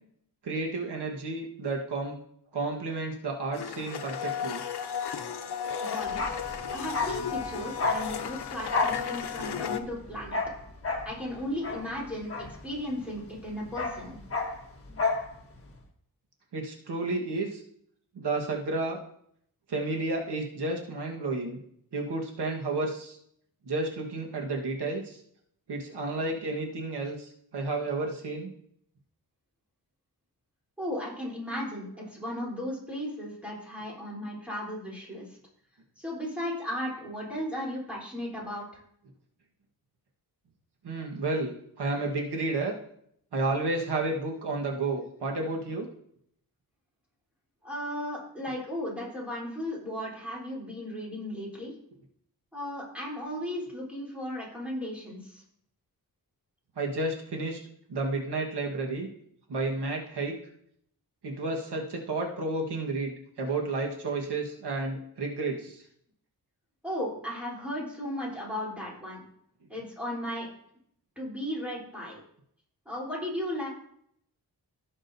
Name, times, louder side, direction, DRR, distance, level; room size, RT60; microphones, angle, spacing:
voice 1, 0.4-2.2 2.5-4.6 16.5-17.6 18.1-19.0 19.7-21.6 21.9-23.2 23.6-25.2 25.7-28.5 40.8-42.7 43.3-45.9 56.8-57.6 57.9-59.1 59.5-60.4 61.2-63.1 63.4-65.8, right 2 dB, 85° right, 1 dB, 1.5 m, -31 dB
Domestic sounds home sounds, 3.5-9.8, left 7 dB, 75° left, 0.8 m, -34 dB
voice 2, 5.8-6.2 6.7-10.4 11.0-12.3 12.6-14.2 30.8-35.4 36.0-38.8 47.6-51.7 52.5-55.4 66.8-69.2 69.7-70.5 71.2-72.2 72.9-73.7, left 1 dB, 5° right, -5 dB, 3.6 m, -35 dB
Bark, 6.1-13.1 13.4-15.3 15.6-15.7, left 3 dB, 35° left, 1.5 m, -32 dB
16.5 x 6.1 x 2.7 m, 0.69 s
wide cardioid pair, 140°, 40 cm